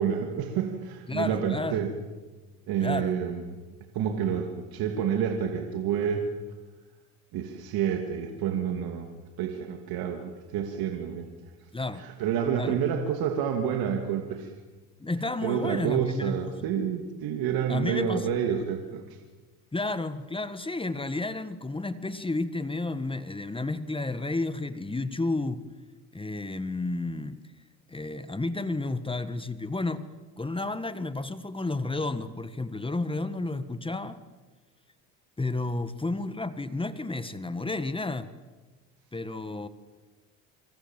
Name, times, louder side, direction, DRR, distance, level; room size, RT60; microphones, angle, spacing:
voice 1, 0.0-1.9 2.7-3.4 3.9-6.3 7.3-9.1 9.4-11.3 12.0-14.5 15.4-19.2, right 8 dB, 65° right, 4 dB, 2.8 m, -29 dB
voice 2, 1.1-1.8 2.8-3.1 11.7-12.0 12.6-12.8 15.0-16.7 17.7-18.3 19.7-25.6 26.1-27.4 27.9-30.1 30.4-34.2 35.4-38.3 39.1-39.7, left 2 dB, 15° left, 12 dB, 1.6 m, -31 dB
25.5 x 25.5 x 7.6 m, 1.2 s
supercardioid pair, 85°, 39 cm